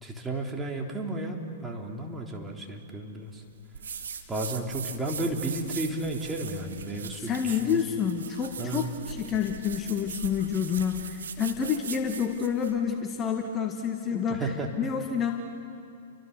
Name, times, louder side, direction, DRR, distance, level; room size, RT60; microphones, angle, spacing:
voice 1, 0.0-3.4 4.3-7.8 8.6-8.9 14.1-14.7, right 2 dB, 10° right, 1 dB, 3.2 m, -33 dB
sound 1, 3.7-12.8, right 6 dB, 75° right, 1.9 m, -40 dB
voice 2, 7.2-14.5 14.8-15.3, left 7 dB, 25° left, 3 dB, 1.8 m, -28 dB
30.0 x 24.5 x 6.7 m, 2.4 s
hypercardioid pair, 110°, 0 cm